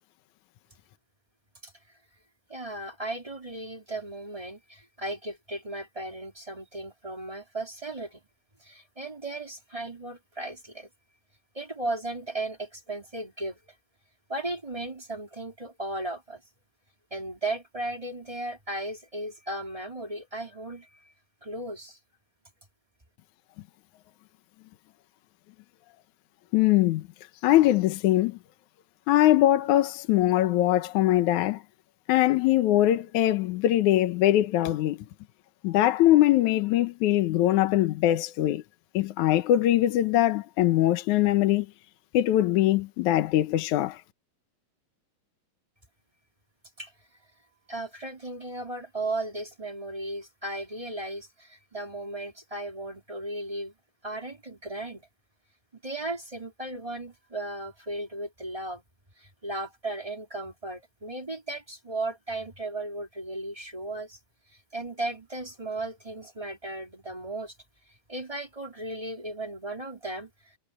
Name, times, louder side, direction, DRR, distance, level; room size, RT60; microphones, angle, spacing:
voice 1, 2.5-8.2 8.6-10.9 11.5-13.6 14.3-16.4 17.1-21.1 21.4-22.0 46.8-46.9 47.7-53.7 54.0-55.1 55.8-58.8 59.2-64.2 64.5-67.6 68.1-70.6, right 2 dB, 10° right, 2.6 m, -36 dB
voice 2, 26.5-27.0 27.4-28.4 29.1-31.6 32.1-35.1 35.6-38.6 38.9-41.7 42.1-44.0, left 14 dB, 70° left, 2.1 m, -22 dB
omnidirectional pair, 4.1 m